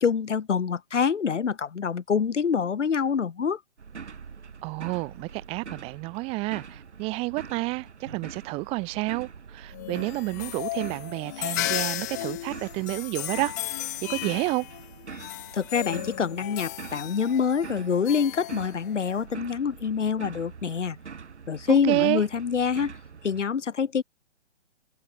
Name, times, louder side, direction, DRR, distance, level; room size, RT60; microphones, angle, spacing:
voice 1, 0.0-3.6 15.5-21.0 21.5-23.0 23.2-24.0, left 6 dB, 85° left, 1.0 m, -26 dB
sound 1, 3.8-23.4, right 6 dB, 75° right, 3.8 m, -44 dB
voice 2, 4.6-13.8 14.1-14.7 21.7-22.2, right 24 dB, 15° right, 0.8 m, -30 dB
sound 2, 9.7-19.2, left 17 dB, 15° left, 0.5 m, -35 dB
figure-of-eight pair, 135°, 35 cm